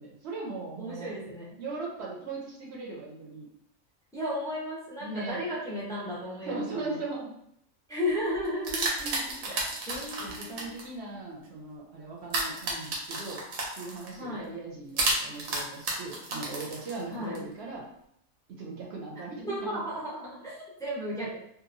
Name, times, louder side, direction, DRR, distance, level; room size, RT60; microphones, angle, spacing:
voice 1, 0.0-1.1 1.6-3.5 5.0-5.4 6.5-7.3 9.0-9.6 10.2-13.4 13.8-17.9 18.6-19.8, right 3 dB, 60° right, -2 dB, 0.8 m, -39 dB
voice 2, 0.8-1.5 4.1-7.0 7.9-8.9 9.5-10.8 14.2-14.5 17.1-17.4 19.4-21.4, left 1 dB, 5° left, -6 dB, 0.4 m, -34 dB
sound 1, 8.4-10.8 12.3-14.1 15.0-17.4, right 2 dB, 80° right, 1.2 m, -32 dB
2.8 x 2.2 x 2.5 m, 0.73 s
omnidirectional pair, 1.5 m